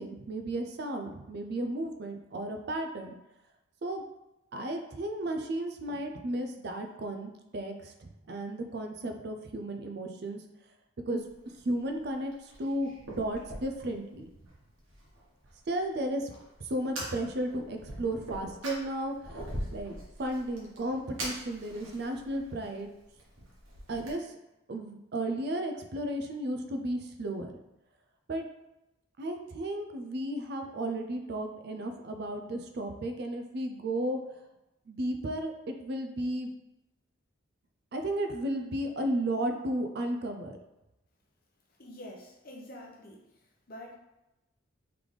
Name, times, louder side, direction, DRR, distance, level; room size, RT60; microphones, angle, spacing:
voice 1, 0.0-3.1 3.8-4.0 4.5-10.4 11.1-11.2 11.6-12.3 12.6-14.3 15.7-16.3 16.7-19.4 19.7-22.9 23.9-24.3 24.7-27.5 28.3-28.4 29.2-34.2 34.9-36.5 37.9-40.6, right 1 dB, 50° right, 5 dB, 0.4 m, -34 dB
Fire, 11.2-24.1, right 1 dB, 75° right, 1.3 m, -44 dB
voice 2, 41.8-43.2 43.7-44.0, left 1 dB, 45° left, -1 dB, 0.8 m, -46 dB
3.9 x 3.4 x 3.2 m, 0.94 s
head